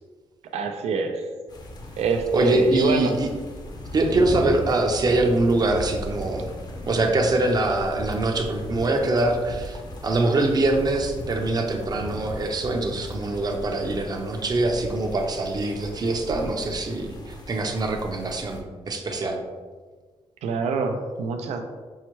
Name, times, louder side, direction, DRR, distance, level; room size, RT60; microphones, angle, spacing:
voice 1, 0.5-1.2 2.0-3.1 20.4-21.6, right 5 dB, 90° right, 4 dB, 0.4 m, -25 dB
sound 1, 1.5-18.6, left 1 dB, 40° left, 0.6 m, -37 dB
voice 2, 2.3-3.3 3.9-6.5 6.9-19.4, right 2 dB, 35° right, 3 dB, 0.5 m, -24 dB
5.5 x 2.1 x 3.0 m, 1.4 s
cardioid pair, 95°, 11 cm